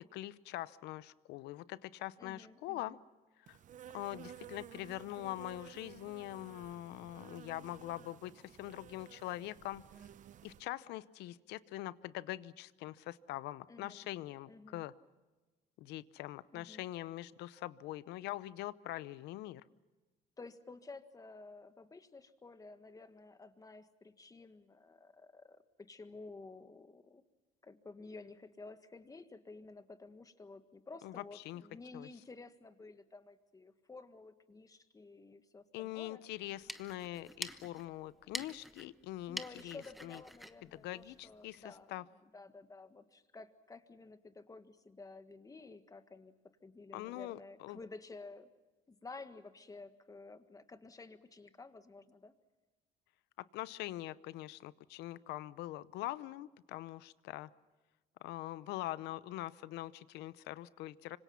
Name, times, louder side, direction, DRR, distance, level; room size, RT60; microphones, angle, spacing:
voice 1, 0.1-3.0 3.5-3.6 3.9-9.8 10.4-14.9 15.8-19.6 31.0-31.6 31.9-32.1 35.7-40.2 40.7-41.6 41.9-42.0 46.9-47.8 53.5-57.5 58.2-61.2, left 15 dB, 85° left, 17 dB, 0.8 m, -43 dB
voice 2, 2.2-3.0 13.7-14.1 14.5-14.8 16.5-16.8 20.4-25.6 25.9-27.2 27.6-36.2 39.3-46.3 46.6-48.5 48.9-52.3, left 3 dB, 20° left, 10 dB, 1.6 m, -52 dB
Insect, 3.5-10.6, right 10 dB, 50° right, 0.7 m, -54 dB
sound 1, 36.4-41.7, equal, ahead, 1.1 m, -47 dB
25.5 x 25.5 x 5.8 m, 1.2 s
cardioid pair, 110°, 17 cm